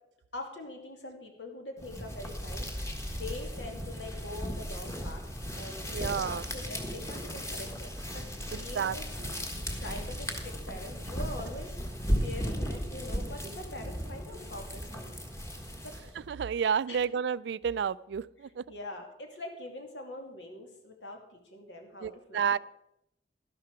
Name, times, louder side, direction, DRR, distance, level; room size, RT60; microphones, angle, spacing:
voice 1, 0.3-5.2 5.6-9.0 9.4-15.1 15.5-15.9 16.9-17.1 18.7-22.6, left 1 dB, 80° left, 3 dB, 2.6 m, -44 dB
sound 1, 1.8-16.2, equal, 15° left, 1.5 m, -36 dB
voice 2, 5.9-6.4 8.5-9.4 16.3-18.6 22.0-22.6, right 7 dB, 70° right, 19 dB, 0.3 m, -31 dB
12.0 x 11.5 x 4.8 m, 0.81 s
head